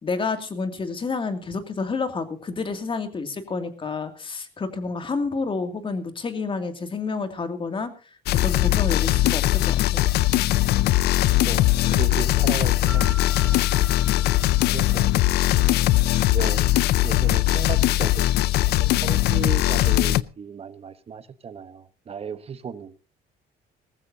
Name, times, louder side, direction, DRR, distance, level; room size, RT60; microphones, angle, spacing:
voice 1, 0.0-7.9 8.4-10.1, left 4 dB, 30° left, 2.6 m, -29 dB
sound 1, 8.3-20.2, left 15 dB, 75° left, 0.6 m, -20 dB
voice 2, 11.3-13.7 14.7-15.1 15.4-15.7 16.3-16.7 17.0-18.3 18.6-22.9, right 6 dB, 35° right, 1.1 m, -35 dB
sound 2, 12.9-15.5, equal, 5° left, 6.9 m, -41 dB
19.5 x 15.0 x 2.8 m
cardioid pair, 110°, 17 cm